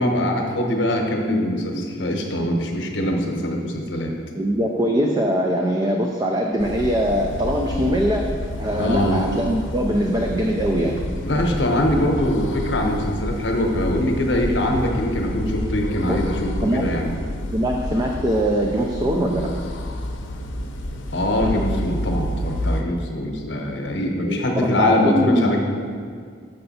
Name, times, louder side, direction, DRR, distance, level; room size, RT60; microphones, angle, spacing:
voice 1, 0.0-4.1 8.8-9.2 11.2-17.1 21.1-25.6, left 1 dB, 70° left, 2 dB, 0.9 m, -22 dB
voice 2, 4.4-11.0 16.0-16.2 16.6-16.9 17.5-19.5 24.2-25.5, equal, 20° right, 1 dB, 0.3 m, -22 dB
sound 1, 6.6-22.8, left 1 dB, 90° left, 0.6 m, -29 dB
6.7 x 5.5 x 4.1 m, 2.1 s
head